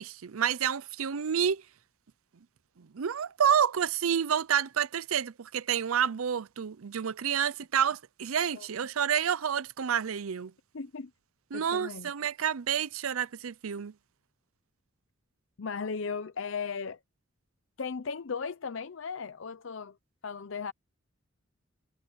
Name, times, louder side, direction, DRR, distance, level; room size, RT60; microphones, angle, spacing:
voice 1, 0.0-1.6 2.8-10.5 11.5-13.9, right 8 dB, 90° right, 0.6 m, -29 dB
voice 2, 10.7-11.1 11.5-12.1 15.6-17.0 17.8-20.0 20.2-20.7, left 5 dB, 65° left, 0.6 m, -36 dB
head